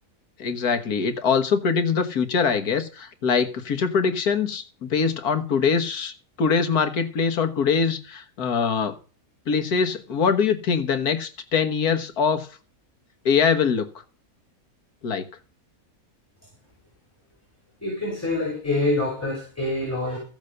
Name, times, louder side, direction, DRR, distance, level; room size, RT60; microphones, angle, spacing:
voice 1, 0.4-6.1 6.4-9.0 9.5-12.5 13.2-13.9 15.0-15.2, left 6 dB, 80° left, 9 dB, 1.8 m, -23 dB
voice 2, 17.8-20.2, left 2 dB, 10° left, -2 dB, 5.4 m, -26 dB
15.0 x 7.3 x 6.5 m, 0.37 s
omnidirectional pair, 1.6 m